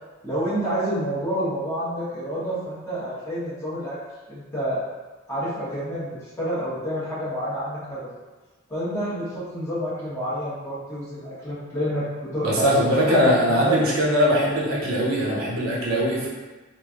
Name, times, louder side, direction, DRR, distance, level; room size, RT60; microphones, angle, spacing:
voice 1, 0.2-4.0 4.3-4.8 5.3-8.1 8.7-13.8, equal, 15° left, -11 dB, 1.0 m, -29 dB
voice 2, 12.4-16.3, equal, 70° right, -5 dB, 0.8 m, -21 dB
3.1 x 2.5 x 2.4 m, 1.3 s
head